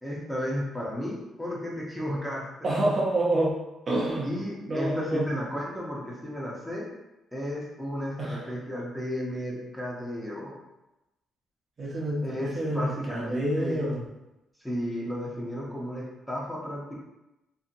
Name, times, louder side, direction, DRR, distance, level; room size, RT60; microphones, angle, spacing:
voice 1, 0.0-2.7 4.2-6.9 7.3-10.6 12.2-13.8 14.6-16.9, equal, 5° left, -4 dB, 0.7 m, -33 dB
voice 2, 2.6-3.6 3.9-4.3 4.7-5.3 8.2-8.5 11.8-14.0, right 1 dB, 45° right, -4 dB, 0.7 m, -27 dB
2.7 x 2.7 x 2.5 m, 0.96 s
cardioid pair, 90°, 0 cm